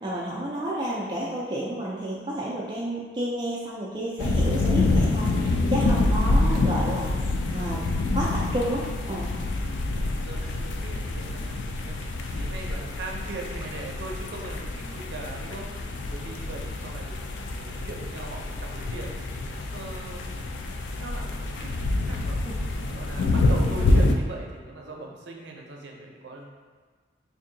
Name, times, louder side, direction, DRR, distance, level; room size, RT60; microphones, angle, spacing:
voice 1, 0.0-7.8 8.1-9.3 22.4-22.5, right 1 dB, 25° right, -6 dB, 0.3 m, -31 dB
sound 1, 4.2-24.1, left 2 dB, 85° left, 0.3 m, -26 dB
voice 2, 9.9-17.2 17.5-20.3 21.0-22.4 22.9-26.5, right 2 dB, 75° right, 0 dB, 0.5 m, -40 dB
2.6 x 2.6 x 3.8 m, 1.5 s
head